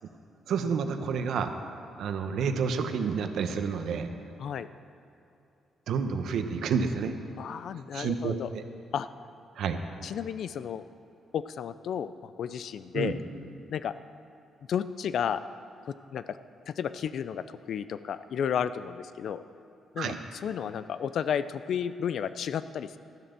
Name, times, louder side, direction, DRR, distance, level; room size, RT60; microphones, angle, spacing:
voice 1, 0.5-1.5 2.0-4.1 5.9-7.1 7.9-8.6 9.6-9.8 12.9-13.1 20.0-20.2, right 6 dB, 75° right, 7 dB, 1.0 m, -29 dB
voice 2, 7.4-8.5 8.9-9.1 10.0-10.8 11.3-13.2 13.7-13.9 14.7-15.4 15.9-16.4 16.7-19.4 19.9-23.0, left 8 dB, 65° left, 13 dB, 0.5 m, -32 dB
13.0 x 11.0 x 6.8 m, 2.7 s
cardioid pair, 110°, 0 cm